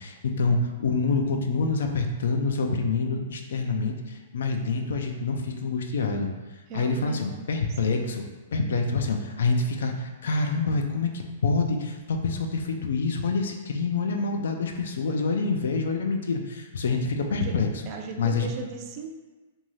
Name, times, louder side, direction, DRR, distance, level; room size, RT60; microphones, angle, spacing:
voice 1, 0.0-6.3 6.7-8.2 8.5-17.7 18.2-18.5, left 4 dB, 80° left, 4 dB, 0.4 m, -26 dB
voice 2, 6.7-7.5 7.8-7.9 17.4-17.6 17.9-19.1, right 5 dB, 35° right, 3 dB, 0.3 m, -37 dB
2.6 x 2.3 x 3.1 m, 1.2 s
hypercardioid pair, 155°, 0 cm